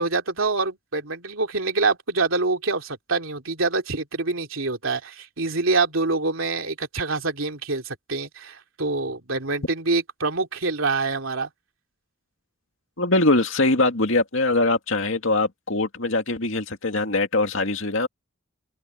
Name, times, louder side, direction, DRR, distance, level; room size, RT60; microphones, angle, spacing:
voice 1, 0.0-11.5, right 3 dB, 70° right, 2.9 m, -25 dB
voice 2, 13.0-18.1, left 2 dB, 65° left, 2.3 m, -22 dB
open air
head